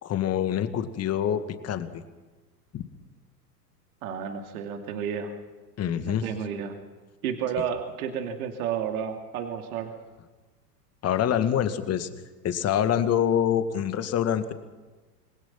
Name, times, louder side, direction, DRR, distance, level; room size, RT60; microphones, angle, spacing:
voice 1, 0.0-1.9 2.7-2.8 5.8-6.3 11.0-12.1 12.4-14.5, left 9 dB, 30° left, 10 dB, 2.1 m, -25 dB
voice 2, 4.0-5.3 6.0-6.7 7.2-9.9, right 7 dB, 60° right, 4 dB, 2.7 m, -31 dB
27.0 x 21.0 x 6.0 m, 1.3 s
figure-of-eight pair, 90°, 48 cm